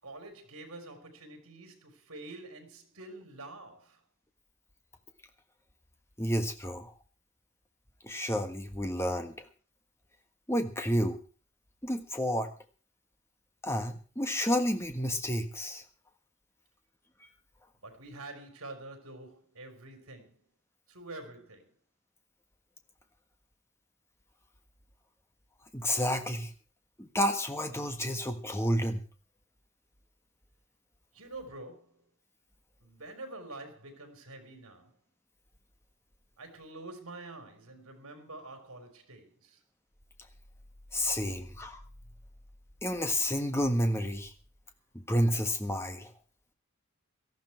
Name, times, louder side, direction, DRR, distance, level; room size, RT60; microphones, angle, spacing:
voice 1, 0.0-4.0 17.8-20.4 20.9-21.7 31.1-32.0 32.8-34.9 36.4-39.6, right 2 dB, 70° right, 4.3 m, -47 dB
voice 2, 6.2-6.9 8.0-9.3 10.5-11.2 11.8-12.5 13.6-15.8 25.7-26.5 27.0-29.0 40.9-41.8 42.8-44.3 45.1-46.1, equal, 10° left, 1.5 m, -30 dB
18.0 x 13.5 x 4.6 m
head